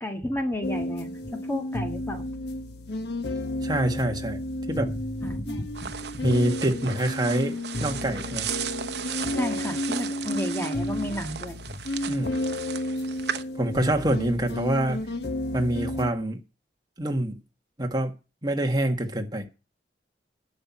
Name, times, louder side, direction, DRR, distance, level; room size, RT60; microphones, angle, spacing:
voice 1, 0.0-2.3 5.2-6.3 9.4-11.8, left 1 dB, 15° left, 1.7 m, -32 dB
sound 1, 0.6-16.1, left 1 dB, 65° left, 1.3 m, -32 dB
voice 2, 3.6-4.4 4.7-4.9 6.2-8.5 12.1-12.4 13.6-15.0 15.5-16.4 17.0-17.4 17.8-18.1 18.4-19.5, right 1 dB, 25° right, 1.8 m, -26 dB
sound 2, 5.7-13.4, right 8 dB, 65° right, 0.9 m, -36 dB
11.5 x 6.2 x 8.5 m
head